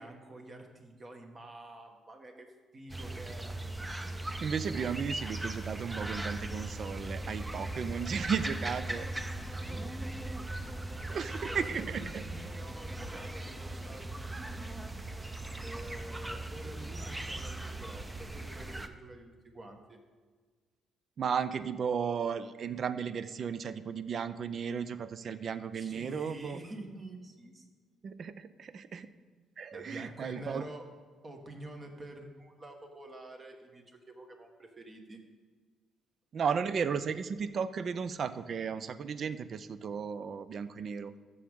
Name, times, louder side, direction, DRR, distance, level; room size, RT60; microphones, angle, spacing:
voice 1, 0.0-3.6 9.7-10.5 11.5-14.9 15.6-20.0 25.7-27.7 29.7-30.9 31.2-35.2, right 1 dB, 35° right, 3 dB, 1.6 m, -48 dB
sound 1, 2.9-18.9, right 1 dB, 15° right, 0.6 m, -39 dB
voice 2, 4.4-9.1 11.1-12.2 21.2-26.6 28.0-29.1 29.6-30.6 36.3-41.2, right 6 dB, 55° right, 13 dB, 0.5 m, -35 dB
14.5 x 6.4 x 3.7 m, 1.5 s
cardioid pair, 90°, 0 cm